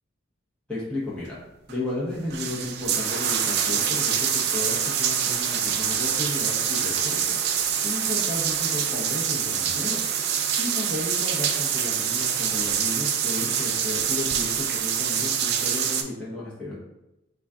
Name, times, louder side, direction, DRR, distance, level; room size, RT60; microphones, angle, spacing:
voice 1, 0.7-1.4 1.7-4.2 4.5-7.4 7.8-10.0 10.6-16.8, left 2 dB, 5° left, -8 dB, 0.7 m, -33 dB
sound 1, 1.7-1.8 2.1-16.0, right 8 dB, 50° right, 0.3 m, -25 dB
3.8 x 2.3 x 3.5 m, 0.93 s
head